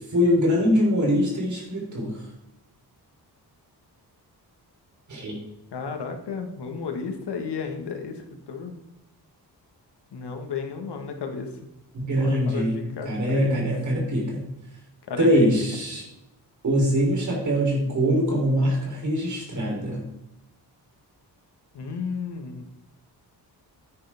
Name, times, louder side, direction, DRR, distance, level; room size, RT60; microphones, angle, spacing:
voice 1, 0.1-2.2 5.1-5.4 11.9-14.5 15.2-16.0 16.6-20.0, equal, 45° right, -1 dB, 3.5 m, -23 dB
voice 2, 5.7-8.2 8.5-8.7 10.1-11.5 12.0-13.6 15.1-15.6 21.7-22.6, left 5 dB, 75° left, 4 dB, 1.7 m, -33 dB
10.0 x 9.5 x 3.6 m, 0.90 s
wide cardioid pair, 175°, 41 cm